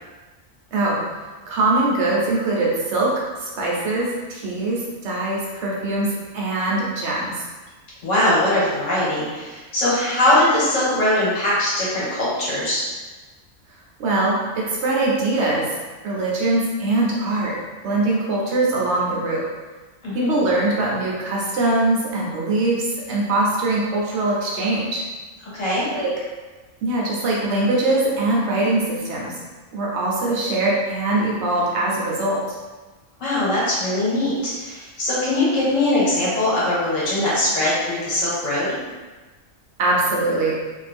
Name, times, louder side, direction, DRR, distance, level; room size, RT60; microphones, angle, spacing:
voice 1, 0.7-1.0 1.5-7.4 14.0-15.7 16.0-17.6 17.8-19.5 20.1-25.0 25.9-26.1 26.8-29.4 29.7-32.4 39.8-40.6, right 2 dB, 65° right, -4 dB, 0.9 m, -22 dB
voice 2, 8.0-12.8 20.0-20.3 25.5-25.8 33.2-38.8, left 1 dB, 75° left, -8 dB, 1.4 m, -21 dB
2.6 x 2.4 x 3.3 m, 1.3 s
omnidirectional pair, 1.3 m